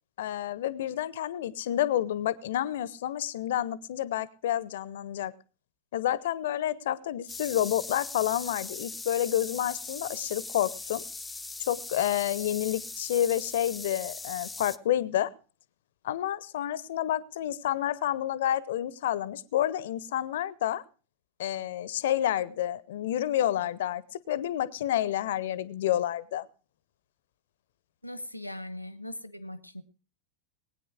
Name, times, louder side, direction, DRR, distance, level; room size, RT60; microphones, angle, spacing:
voice 1, 0.2-5.3 5.9-11.0 11.7-15.3 16.0-20.8 21.4-26.4, left 12 dB, 55° left, 19 dB, 0.8 m, -29 dB
sound 1, 7.3-14.8, left 3 dB, 10° left, 0.7 m, -40 dB
voice 2, 28.0-29.8, left 1 dB, 90° left, 16 dB, 1.1 m, -40 dB
20.5 x 9.3 x 4.8 m, 0.37 s
figure-of-eight pair, 90°, 0 cm